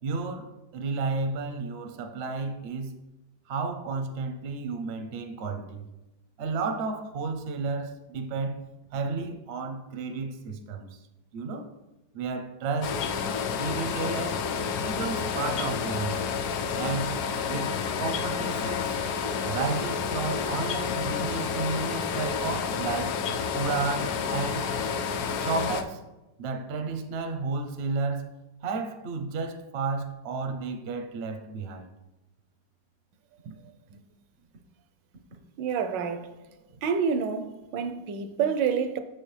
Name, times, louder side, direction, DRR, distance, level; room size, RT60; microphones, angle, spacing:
voice 1, 0.0-2.9 3.5-5.9 6.4-8.6 8.9-11.0 11.3-11.7 12.1-13.0 13.5-14.5 14.8-16.2 16.8-17.2 17.5-19.0 19.4-23.2 23.5-24.7 25.3-26.0 26.4-28.3 28.6-31.9, right 4 dB, 60° right, 0.6 m, -32 dB
sound 1, 12.8-25.8, left 6 dB, 75° left, 1.0 m, -30 dB
voice 2, 35.6-36.3 36.8-39.0, right 6 dB, 85° right, 1.3 m, -28 dB
6.6 x 6.2 x 3.2 m
omnidirectional pair, 1.9 m